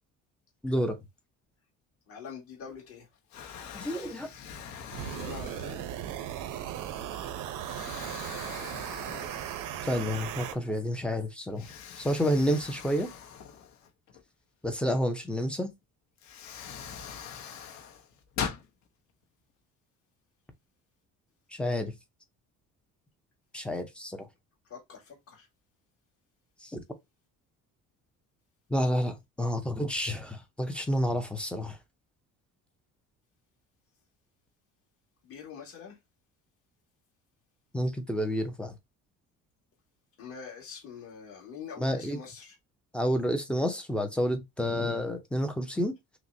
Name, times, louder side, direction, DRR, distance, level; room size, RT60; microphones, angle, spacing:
voice 1, 0.6-1.0 3.7-4.3 9.8-11.7 12.0-13.1 14.6-15.7 21.5-21.9 23.5-24.2 26.6-26.8 28.7-31.8 37.7-38.7 41.8-42.2 42.9-46.0, equal, 5° left, 0.4 m, -29 dB
voice 2, 2.1-3.0 5.1-5.8 24.7-25.4 35.2-35.9 40.2-42.5, left 6 dB, 45° left, 1.8 m, -44 dB
Explosion, 2.6-3.0 3.3-6.1 6.7-6.9 7.6-9.9 10.2-10.3 11.6-14.2 15.6-15.7 16.2-18.7, left 7 dB, 60° left, 0.9 m, -42 dB
sound 1, 4.9-10.5, right 10 dB, 90° right, 0.7 m, -37 dB
5.7 x 2.1 x 2.6 m
cardioid pair, 180°, 31 cm